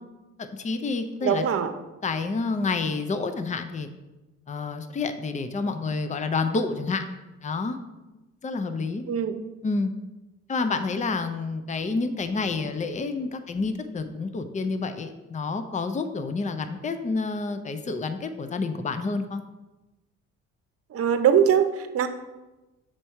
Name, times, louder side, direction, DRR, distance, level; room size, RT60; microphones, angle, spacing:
voice 1, 0.4-1.4 2.0-3.9 4.5-7.1 7.4-7.8 8.4-9.0 9.6-9.9 10.5-19.4, left 4 dB, 25° left, 9 dB, 0.6 m, -29 dB
voice 2, 1.2-1.7 9.1-9.4 20.9-22.1, right 8 dB, 50° right, 8 dB, 0.8 m, -22 dB
6.1 x 4.5 x 5.6 m, 1.1 s
cardioid pair, 90°, 30 cm